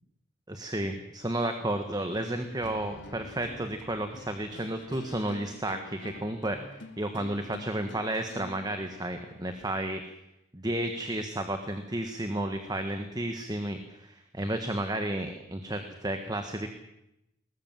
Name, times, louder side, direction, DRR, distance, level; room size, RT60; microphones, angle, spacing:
voice 1, 0.5-10.0 10.5-16.7, right 1 dB, 20° right, 7 dB, 1.5 m, -32 dB
sound 1, 2.1-9.5, left 1 dB, 60° left, 2.4 m, -47 dB
21.5 x 19.5 x 7.5 m, 0.87 s
head